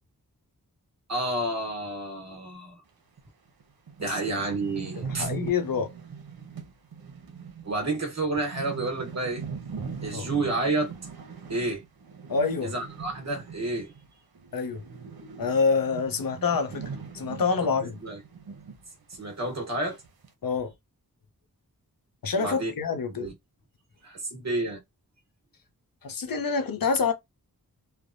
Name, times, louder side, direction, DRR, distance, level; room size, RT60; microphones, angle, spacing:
voice 1, 1.1-2.8 4.0-5.3 7.6-9.4 10.0-10.9 11.5-11.8 12.6-13.9 17.6-17.7 18.0-18.2 19.2-20.0 22.4-22.7 23.1-23.3 24.0-24.8, right 2 dB, 45° right, 1.1 m, -30 dB
sound 1, 3.2-3.3 3.6-3.7 3.9-14.1 14.4-18.8 19.1-19.2 19.8-20.3, right 5 dB, 90° right, 0.7 m, -40 dB
voice 2, 5.0-5.9 10.1-10.3 12.3-12.7 14.5-14.8 15.4-16.8 17.1-18.0 20.4-20.7 22.2-23.3 26.0-27.1, left 5 dB, 70° left, 0.7 m, -26 dB
3.2 x 2.1 x 2.5 m
wide cardioid pair, 85°, 36 cm